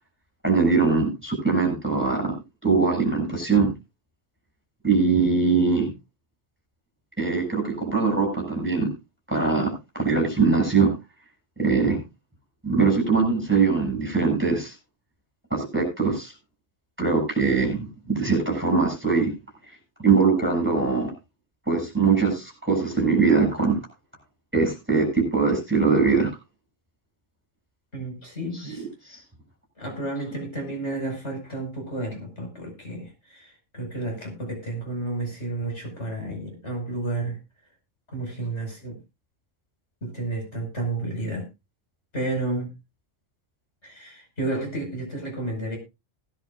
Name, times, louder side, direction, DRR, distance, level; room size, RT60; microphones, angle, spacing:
voice 1, 0.4-2.3 2.6-3.7 4.8-5.9 7.2-8.9 9.3-10.9 11.6-12.0 12.6-14.7 15.5-16.3 17.0-19.3 20.0-21.1 21.7-23.8 24.5-26.3 28.7-29.2, right 4 dB, 10° right, 2 dB, 7.0 m, -22 dB
voice 2, 27.9-29.2 29.8-37.4 38.1-39.0 40.0-41.4 42.1-42.8 43.8-45.8, right 2 dB, 65° left, 1 dB, 5.7 m, -31 dB
20.0 x 11.0 x 2.5 m, 0.26 s
omnidirectional pair, 1.3 m